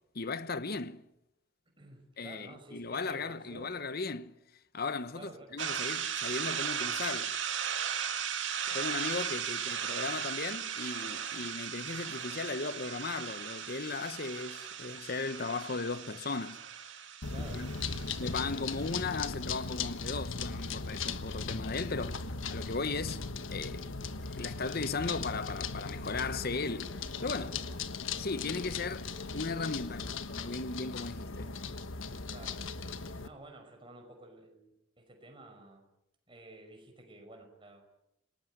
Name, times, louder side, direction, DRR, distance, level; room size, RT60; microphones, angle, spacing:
voice 1, 0.1-1.1 2.2-4.3 4.7-7.3 8.7-16.6 17.4-17.7 18.2-23.8 24.3-27.6 28.2-31.5, left 4 dB, 50° left, 1.0 m, -37 dB
voice 2, 1.8-3.7 5.1-5.6 9.7-9.9 17.3-17.9 18.5-18.8 32.3-35.8 36.3-37.9, right 2 dB, 25° right, 5.6 m, -52 dB
sound 1, 5.6-18.9, right 8 dB, 70° right, 2.6 m, -37 dB
sound 2, 17.2-33.3, left 4 dB, 80° left, 1.4 m, -38 dB
27.5 x 19.0 x 9.3 m
head